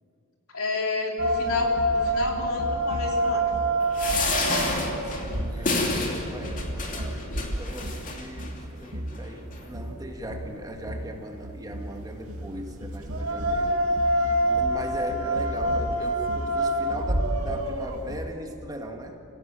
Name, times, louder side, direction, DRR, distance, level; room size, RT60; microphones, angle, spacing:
voice 1, 0.5-3.5, left 2 dB, 70° left, 1 dB, 3.9 m, -30 dB
sound 1, 1.2-18.3, right 1 dB, 80° right, 2.4 m, -28 dB
sound 2, 3.9-8.5 9.1-9.3 9.5-9.6, left 2 dB, 35° left, 2.7 m, -29 dB
voice 2, 5.0-7.3 7.6-19.3, right 1 dB, 15° right, 3 dB, 1.9 m, -39 dB
27.0 x 17.0 x 9.1 m, 2.6 s
head